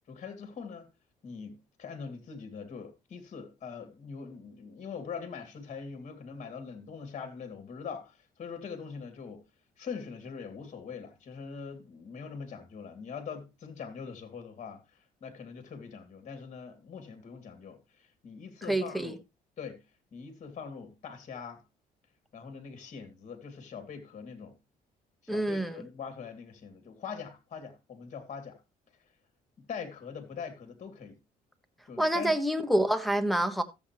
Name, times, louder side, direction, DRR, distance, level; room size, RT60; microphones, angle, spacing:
voice 1, 0.1-0.9 1.2-9.4 9.8-14.8 15.2-19.1 19.6-19.8 20.1-21.6 22.3-24.6 25.2-28.6 29.6-31.2 31.9-32.3, left 6 dB, 50° left, 2.6 m, -42 dB
voice 2, 18.7-19.2 25.3-25.8 32.0-33.6, right 1 dB, ahead, 1.3 m, -27 dB
14.0 x 7.9 x 3.1 m
cardioid pair, 110°, 16 cm